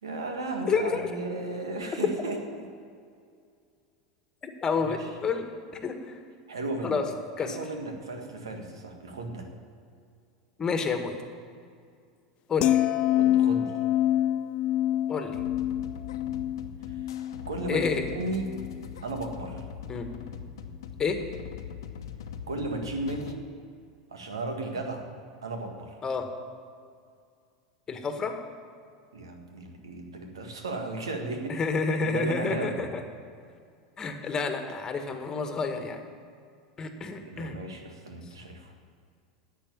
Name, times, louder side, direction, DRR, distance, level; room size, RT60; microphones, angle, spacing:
voice 1, 0.0-2.6 5.0-5.1 6.5-7.0 7.4-9.5 13.1-13.8 17.5-17.9 18.1-18.5 19.0-19.6 22.5-23.4 24.1-25.0 25.4-26.0 29.1-31.6 32.0-32.8 37.2-38.7, right 2 dB, 85° right, 4 dB, 1.7 m, -35 dB
voice 2, 0.7-1.1 4.6-5.4 5.8-6.2 6.8-7.0 7.4-7.6 10.6-11.2 12.5-12.8 15.1-15.3 17.7-18.0 19.9-20.1 21.0-21.2 26.0-26.3 27.9-28.3 31.5-33.0 34.0-36.0 36.8-37.6, left 5 dB, 25° left, 6 dB, 1.6 m, -29 dB
sound 1, 12.6-18.9 19.2-19.5, left 12 dB, 45° left, 0.3 m, -27 dB
sound 2, 15.3-23.3, left 7 dB, 75° left, 0.9 m, -42 dB
10.5 x 8.2 x 8.9 m, 2.3 s
hypercardioid pair, 90°, 2 cm